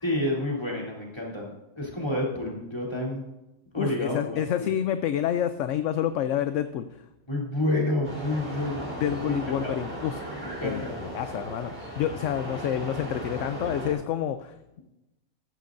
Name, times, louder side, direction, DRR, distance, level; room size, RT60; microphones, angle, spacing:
voice 1, 0.0-3.3 3.7-4.4 7.3-8.8 9.3-9.7 10.4-10.9, left 1 dB, 20° left, -4 dB, 3.2 m, -29 dB
voice 2, 3.8-6.9 9.0-10.2 10.6-14.8, left 10 dB, 70° left, 10 dB, 0.9 m, -28 dB
sound 1, 8.0-13.9, right 1 dB, 10° right, 3.5 m, -37 dB
14.0 x 13.5 x 2.6 m, 0.96 s
omnidirectional pair, 1.5 m